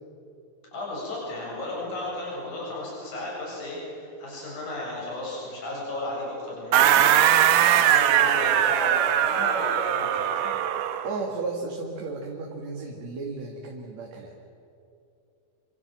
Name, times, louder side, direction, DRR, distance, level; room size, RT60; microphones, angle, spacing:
voice 1, 0.7-10.6, left 2 dB, 65° left, -4 dB, 9.1 m, -34 dB
sound 1, 6.7-11.1, right 11 dB, 80° right, 2.6 m, -21 dB
voice 2, 11.0-14.3, right 3 dB, 55° right, 0 dB, 3.3 m, -34 dB
28.0 x 25.5 x 7.5 m, 2.7 s
omnidirectional pair, 3.8 m